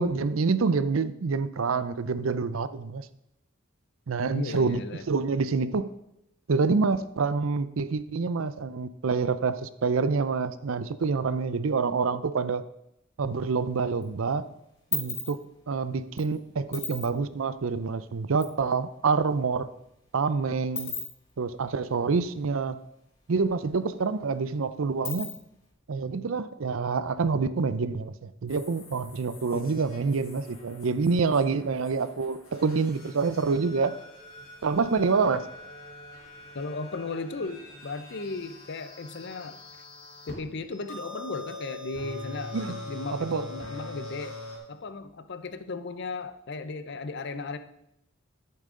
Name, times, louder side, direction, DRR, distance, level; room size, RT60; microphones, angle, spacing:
voice 1, 0.0-3.1 4.1-5.9 6.5-12.6 13.2-14.5 14.9-15.4 15.7-19.7 20.1-20.9 21.4-22.8 23.3-25.3 25.9-33.9 34.6-35.5 42.5-42.8 43.1-43.4, right 4 dB, 80° right, 13 dB, 0.5 m, -27 dB
voice 2, 4.3-5.1 29.5-29.7 36.5-39.6 40.3-44.4 44.7-47.6, left 3 dB, 55° left, 11 dB, 0.6 m, -36 dB
sound 1, 13.3-14.0 14.3-18.6 18.9-19.0 19.2-23.0 23.3-23.4 23.7-25.7, left 5 dB, 35° left, 2.8 m, -37 dB
sound 2, 28.5-40.3 40.7-44.6, left 2 dB, 80° left, 3.1 m, -44 dB
10.5 x 8.6 x 3.8 m, 0.82 s
head